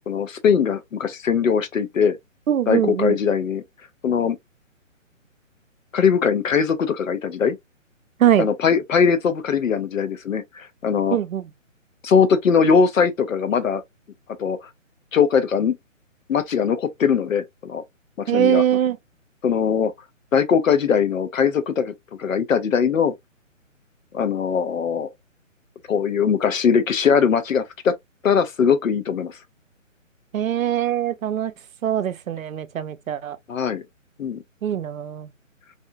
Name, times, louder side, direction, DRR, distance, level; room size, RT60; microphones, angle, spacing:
voice 1, 0.1-2.2 2.7-3.6 4.0-4.4 5.9-7.6 8.4-11.2 12.0-13.8 14.4-14.6 15.1-15.7 16.3-17.8 18.3-18.6 19.4-19.9 20.3-21.9 22.2-23.1 24.1-25.1 25.9-27.9 28.2-29.4 33.5-33.8 34.2-34.4, left 6 dB, 75° left, 0.8 m, -20 dB
voice 2, 2.5-3.2 8.2-8.5 11.1-11.5 18.3-19.0 30.3-31.5 31.8-33.4 34.6-35.3, right 10 dB, 85° right, 0.6 m, -22 dB
2.7 x 2.2 x 2.5 m
hypercardioid pair, 155°, 40 cm